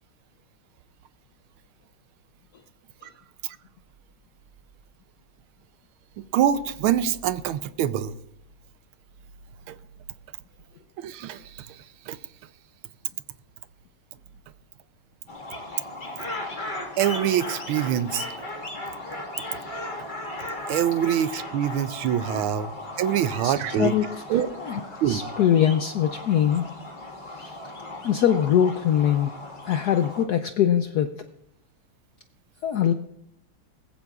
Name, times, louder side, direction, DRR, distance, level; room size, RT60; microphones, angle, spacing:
voice 1, 6.3-8.1 9.7-9.8 11.0-11.7 12.1-12.2 17.0-18.3 20.7-22.7 23.0-23.9 24.3-24.5 25.0-25.2, right 10 dB, 90° right, 1.5 m, -24 dB
sound 1, 15.3-30.2, left 1 dB, 25° left, 1.7 m, -36 dB
voice 2, 23.4-26.8 27.2-27.6 28.0-29.3 29.6-31.3 32.6-32.9, left 9 dB, 75° left, 0.9 m, -23 dB
20.5 x 14.5 x 2.4 m
omnidirectional pair, 2.3 m